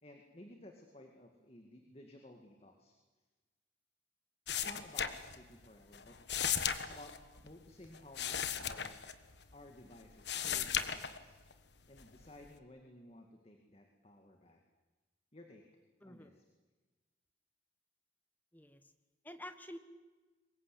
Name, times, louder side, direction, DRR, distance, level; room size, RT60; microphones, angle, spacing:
voice 1, 0.0-2.9 4.5-6.2 6.8-7.2 7.4-9.0 9.5-11.4 11.9-14.6 15.3-15.6 16.0-16.4, left 1 dB, 35° left, 3 dB, 2.1 m, -56 dB
sound 1, 4.5-5.7 5.9-9.7 10.0-11.5 12.0-12.6, left 8 dB, 70° left, 1.4 m, -37 dB
voice 2, 16.0-16.4 18.5-18.9 19.2-19.8, left 1 dB, 10° left, 9 dB, 1.4 m, -49 dB
24.0 x 21.0 x 8.5 m, 1.3 s
head